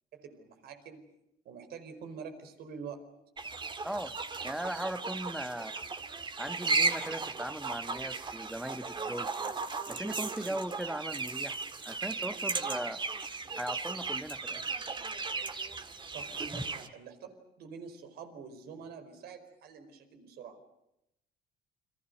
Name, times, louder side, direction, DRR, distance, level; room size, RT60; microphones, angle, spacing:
voice 1, 0.1-1.1 1.4-3.0 16.1-17.3 17.6-20.6, right 6 dB, 70° right, 8 dB, 4.8 m, -46 dB
sound 1, 3.4-16.9, right 4 dB, 30° right, 2.0 m, -36 dB
voice 2, 3.8-4.1 4.4-5.8 6.4-9.3 9.9-11.6 11.8-13.0 13.6-14.6 16.5-16.6, right 1 dB, ahead, 11 dB, 1.2 m, -38 dB
29.5 x 24.5 x 6.6 m, 0.83 s
cardioid pair, 110°, 17 cm